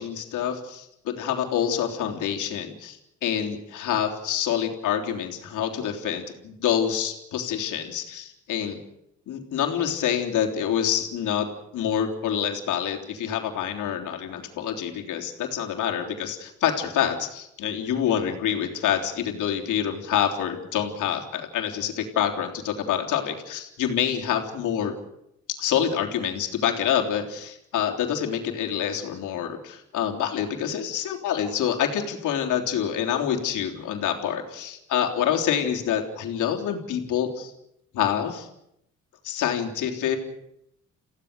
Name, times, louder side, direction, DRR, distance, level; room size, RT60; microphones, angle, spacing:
voice 1, 0.0-8.8 9.3-24.9 25.6-37.5 37.9-38.5 39.2-40.2, left 9 dB, 80° left, 2 dB, 3.6 m, -27 dB
28.5 x 16.5 x 6.8 m, 0.80 s
cardioid pair, 90°, 30 cm